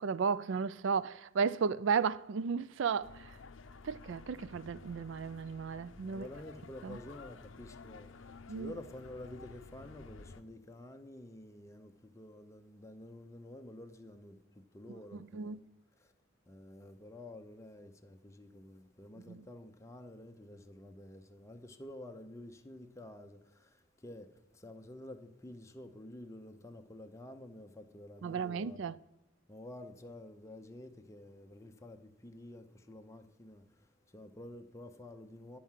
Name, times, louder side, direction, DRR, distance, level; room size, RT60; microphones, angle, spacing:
voice 1, 0.0-3.3 3.8-6.3 6.8-7.0 8.5-8.7 15.1-15.6 19.3-19.4 28.2-29.0, right 6 dB, 65° right, 0.4 m, -34 dB
sound 1, 3.0-10.4, left 4 dB, 70° left, 0.6 m, -53 dB
voice 2, 6.0-14.4 14.7-15.6 16.0-16.1 16.5-28.9 29.5-35.6, left 1 dB, 15° left, 0.7 m, -50 dB
11.0 x 4.7 x 7.3 m
head